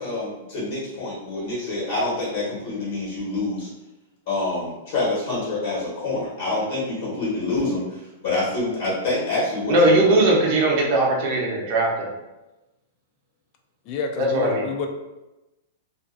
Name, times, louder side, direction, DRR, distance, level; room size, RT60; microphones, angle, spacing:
voice 1, 0.0-3.7 4.3-10.0, left 2 dB, 65° left, -7 dB, 1.2 m, -26 dB
voice 2, 9.7-12.1 14.2-14.7, right 1 dB, 45° right, -2 dB, 0.7 m, -19 dB
voice 3, 13.9-14.9, left 4 dB, 35° left, 3 dB, 0.3 m, -29 dB
2.5 x 2.2 x 2.5 m, 1.0 s
supercardioid pair, 160°, 0 cm